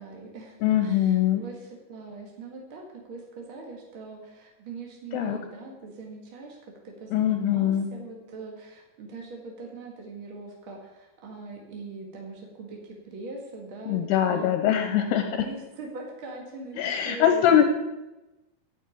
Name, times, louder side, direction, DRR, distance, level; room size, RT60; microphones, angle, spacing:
voice 1, 0.0-6.6 6.8-17.4, right 3 dB, 45° right, 0 dB, 1.7 m, -42 dB
voice 2, 0.6-1.4 5.1-5.4 7.1-7.9 13.9-15.5 16.8-17.6, left 10 dB, 75° left, 6 dB, 2.6 m, -22 dB
9.1 x 8.5 x 9.7 m, 1.0 s
omnidirectional pair, 5.5 m